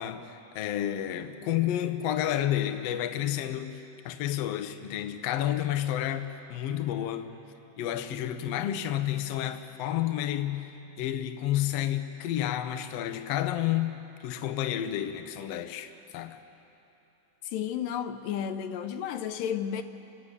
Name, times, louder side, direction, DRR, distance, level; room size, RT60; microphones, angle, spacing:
voice 1, 0.0-3.8 4.0-7.3 7.8-10.7 11.0-16.4, left 12 dB, 75° left, 1.5 m, -30 dB
voice 2, 17.4-19.8, left 9 dB, 90° left, 2.4 m, -32 dB
29.5 x 11.0 x 8.3 m
omnidirectional pair, 3.9 m